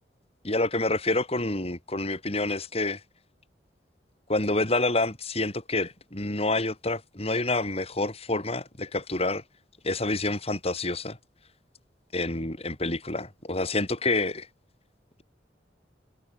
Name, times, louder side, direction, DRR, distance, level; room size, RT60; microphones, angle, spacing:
voice 1, 0.4-3.0 4.3-9.4 9.8-11.2 12.1-14.5, left 2 dB, 35° left, 4.9 m, -28 dB
head